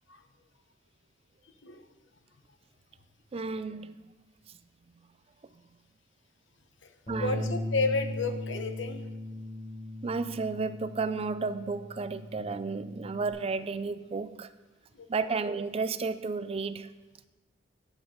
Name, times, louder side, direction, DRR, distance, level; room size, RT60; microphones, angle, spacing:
voice 1, 3.3-4.0 4.5-4.6 7.1-7.6 10.0-14.5 15.1-16.9, right 4 dB, 30° right, 0.4 m, -32 dB
Bass guitar, 7.1-13.3, left 1 dB, 35° left, 3.2 m, -38 dB
voice 2, 7.2-9.1 14.9-15.3, left 3 dB, 75° left, 1.0 m, -32 dB
12.0 x 8.9 x 3.8 m
head